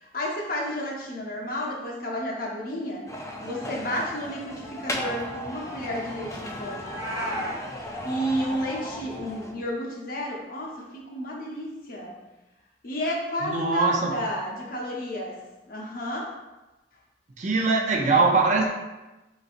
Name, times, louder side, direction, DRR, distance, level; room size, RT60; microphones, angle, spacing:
voice 1, 0.0-7.5 7.8-12.1 12.8-15.4 15.7-16.3, equal, 55° left, -2 dB, 0.8 m, -32 dB
sound 1, 3.1-9.5, left 1 dB, 20° left, 0.5 m, -35 dB
Meow, 6.8-7.6, equal, 25° right, 1.0 m, -33 dB
voice 2, 13.4-14.1 17.4-18.7, right 3 dB, 45° right, 0 dB, 0.6 m, -22 dB
4.1 x 3.9 x 2.5 m, 1.1 s
head